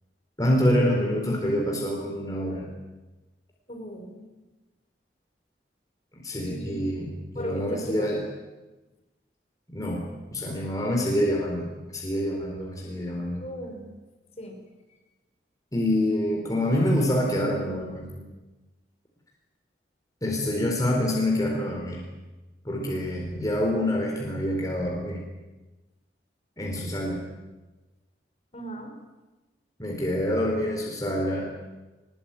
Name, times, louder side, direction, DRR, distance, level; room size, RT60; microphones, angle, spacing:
voice 1, 0.4-2.7 6.1-8.2 9.7-10.0 10.3-13.5 15.7-18.3 20.2-22.0 22.6-25.2 26.6-27.2 29.8-31.5, left 1 dB, 20° left, -1 dB, 4.4 m, -26 dB
voice 2, 3.7-4.2 6.5-6.9 7.3-8.2 13.4-14.0 14.4-14.6 28.5-29.0, equal, 35° left, 3 dB, 5.2 m, -37 dB
23.0 x 21.5 x 9.2 m, 1.1 s
head